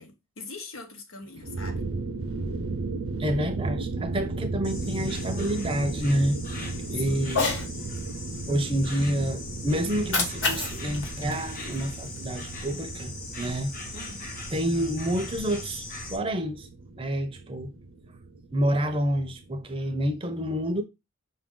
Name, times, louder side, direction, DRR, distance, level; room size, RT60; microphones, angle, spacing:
voice 1, 0.0-1.8 7.0-7.3 13.9-14.3, left 3 dB, 80° left, 1.0 m, -42 dB
sound 1, 1.4-20.2, right 3 dB, 80° right, 0.6 m, -36 dB
voice 2, 3.2-7.4 8.5-13.1 13.4-13.7 14.5-15.8 16.1-16.7 17.0-17.7 18.5-20.8, equal, 25° right, 0.5 m, -28 dB
Insect, 4.6-16.2, left 1 dB, 40° left, 0.9 m, -39 dB
Cat, 7.2-7.7 9.9-12.2, left 3 dB, 60° left, 1.2 m, -30 dB
5.2 x 2.5 x 3.6 m
head